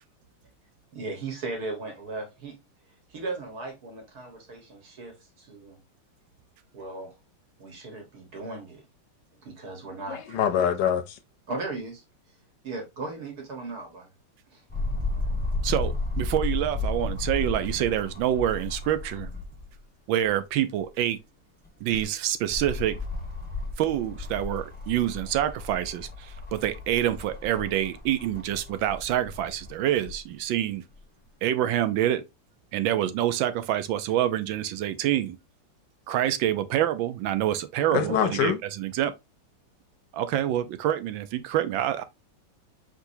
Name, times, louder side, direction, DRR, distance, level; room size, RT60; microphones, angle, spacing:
voice 1, 0.9-2.6 3.1-5.8 6.7-7.2 7.6-8.8 9.3-10.4 11.5-12.0 12.6-14.1 14.5-14.6, right 3 dB, 55° right, 1.9 m, -37 dB
voice 2, 10.1-11.2 37.9-38.6, left 9 dB, 70° left, 1.2 m, -25 dB
sound 1, 14.7-19.7 20.2-20.3 21.6-30.2 30.9-31.0, left 2 dB, 10° left, 0.7 m, -33 dB
voice 3, 15.6-19.3 20.1-21.2 21.8-23.0 23.8-30.8 31.4-32.2 32.7-35.4 36.1-39.1 40.1-42.0, right 12 dB, 85° right, 1.4 m, -26 dB
4.7 x 3.9 x 2.6 m
omnidirectional pair, 2.1 m